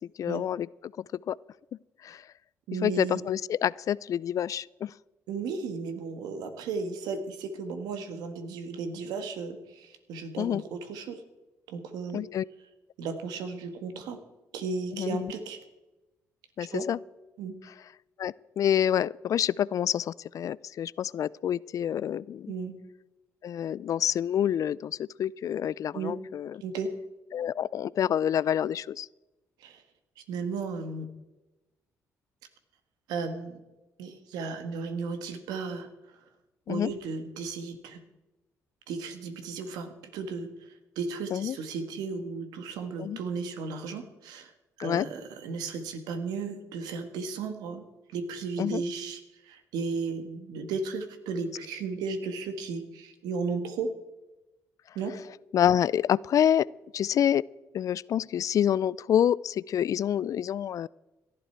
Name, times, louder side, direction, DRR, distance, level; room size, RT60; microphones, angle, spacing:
voice 1, 0.2-0.7 1.3-1.4 2.0-2.2 2.8-4.9 10.4-10.6 12.1-12.5 14.9-15.3 16.6-17.0 18.2-22.5 23.4-26.6 27.3-29.1 36.7-36.9 41.3-41.6 43.0-43.2 44.8-45.1 48.6-48.8 55.5-56.7 56.9-57.4 57.7-60.9, left 10 dB, 55° left, 23 dB, 0.3 m, -27 dB
voice 2, 2.7-3.2 5.3-11.2 11.7-12.2 13.0-14.2 14.5-15.6 16.7-16.9 17.4-17.5 22.5-22.7 25.9-26.1 26.6-26.9 29.6-29.8 30.2-31.1 33.1-33.6 34.0-36.2 36.7-38.0 38.9-44.5 44.8-47.8 48.1-53.9 54.9-55.2, right 4 dB, 85° right, 9 dB, 1.6 m, -35 dB
17.5 x 12.0 x 4.5 m, 1.0 s
supercardioid pair, 70°, 7 cm